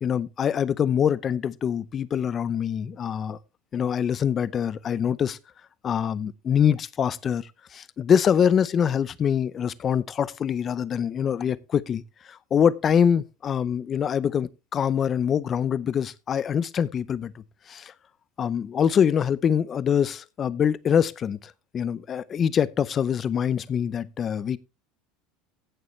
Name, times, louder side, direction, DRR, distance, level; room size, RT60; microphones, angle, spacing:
voice 1, 0.0-3.4 3.7-5.4 5.8-12.0 12.3-17.4 17.7-17.9 18.4-24.6, left 8 dB, 30° left, 0.6 m, -24 dB
15.5 x 6.9 x 3.2 m
supercardioid pair, 145°, 0 cm